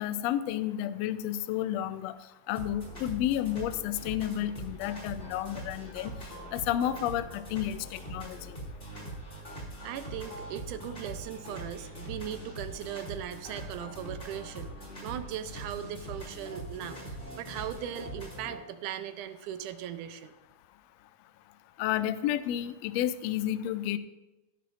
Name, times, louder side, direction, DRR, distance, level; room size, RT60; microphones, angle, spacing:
voice 1, 0.0-2.1 2.5-6.1 6.5-8.6 21.8-24.0, left 12 dB, 85° left, 12 dB, 1.5 m, -31 dB
sound 1, 2.6-18.6, right 1 dB, 15° left, 2.8 m, -42 dB
voice 2, 9.8-20.3, right 10 dB, 85° right, 10 dB, 2.2 m, -39 dB
15.5 x 11.0 x 2.6 m, 1.0 s
omnidirectional pair, 3.6 m